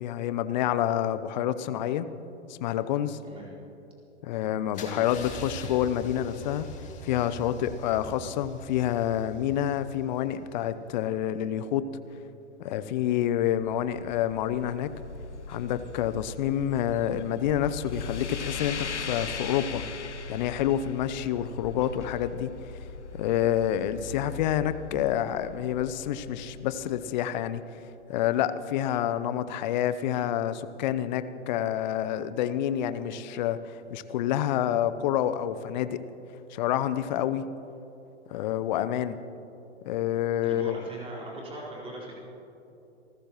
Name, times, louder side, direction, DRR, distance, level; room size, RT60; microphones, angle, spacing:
voice 1, 0.0-2.1 2.5-3.2 4.2-6.7 7.0-11.9 12.6-14.9 15.5-19.8 20.3-22.8 23.1-27.6 28.1-36.0 36.5-37.5 38.3-39.2 39.8-40.8, left 11 dB, 40° left, 13 dB, 0.7 m, -28 dB
Car / Engine starting / Idling, 4.7-10.6, equal, 20° left, 2.2 m, -43 dB
sound 1, 13.4-27.4, left 5 dB, 80° left, 0.8 m, -39 dB
voice 2, 40.4-42.1, right 1 dB, 15° right, -5 dB, 4.5 m, -40 dB
28.5 x 14.5 x 3.1 m, 2.9 s
figure-of-eight pair, 105°, 34 cm